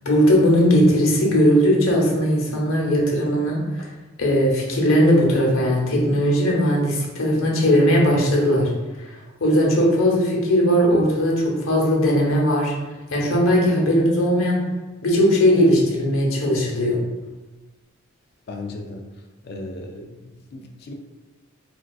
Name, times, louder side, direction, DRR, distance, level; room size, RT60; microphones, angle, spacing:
voice 1, 0.0-3.9 4.2-8.7 9.0-12.7 13.1-14.6 15.0-17.0, equal, 85° left, -2 dB, 0.9 m, -18 dB
voice 2, 18.5-19.1 19.4-20.9, left 2 dB, 50° left, 3 dB, 0.4 m, -36 dB
4.4 x 2.3 x 2.3 m, 1.2 s
head